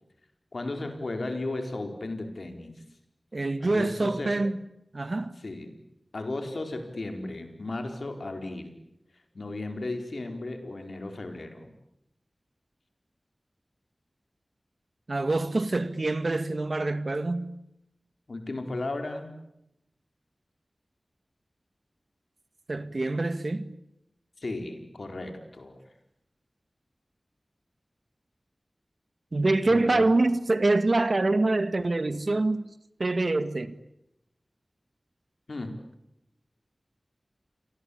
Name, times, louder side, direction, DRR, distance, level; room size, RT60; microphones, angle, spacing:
voice 1, 0.5-2.8 3.6-4.4 5.4-5.8 6.1-8.7 9.3-11.7 18.3-19.3 24.4-25.8 29.6-30.1 35.5-35.7, left 2 dB, 75° left, 4.6 m, -35 dB
voice 2, 3.3-4.5 4.9-5.4 15.1-17.5 22.7-23.7 29.3-32.7 33.0-33.8, right 2 dB, 60° right, 1.8 m, -25 dB
29.5 x 23.5 x 8.7 m
wide cardioid pair, 50°, 0 cm